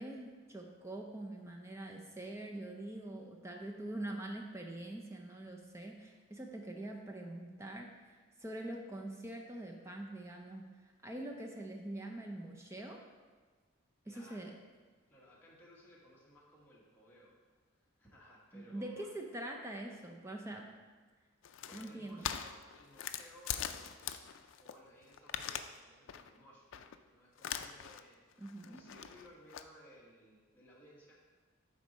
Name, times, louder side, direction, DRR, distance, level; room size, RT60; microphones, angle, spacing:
voice 1, 0.0-13.0 14.1-14.5 18.5-20.7 21.7-22.3 28.4-28.8, right 1 dB, 15° right, 2 dB, 0.5 m, -44 dB
voice 2, 14.0-14.5 15.1-17.3 17.8-19.1 21.6-24.2 24.6-31.1, equal, 10° left, -6 dB, 1.5 m, -60 dB
sound 1, 21.4-24.8 25.0-25.8 26.1-26.4 26.7-27.0 27.4-28.0 28.3-29.6, left 9 dB, 70° left, 0.4 m, -42 dB
8.1 x 4.1 x 5.3 m, 1.4 s
head